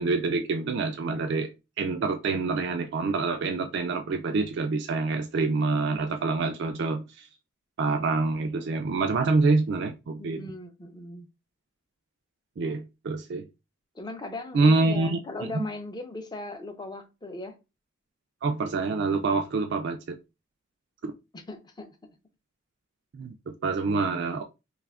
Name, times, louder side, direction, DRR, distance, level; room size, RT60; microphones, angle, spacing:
voice 1, 0.0-1.5 1.8-7.3 7.8-10.4 12.6-13.5 14.5-15.2 15.5-15.7 18.4-20.2 21.0-21.1 23.1-24.4, right 3 dB, 55° right, 0.3 m, -26 dB
voice 2, 10.2-11.3 13.9-17.6 21.3-22.1, left 2 dB, 20° left, 0.4 m, -38 dB
2.7 x 2.4 x 3.3 m
head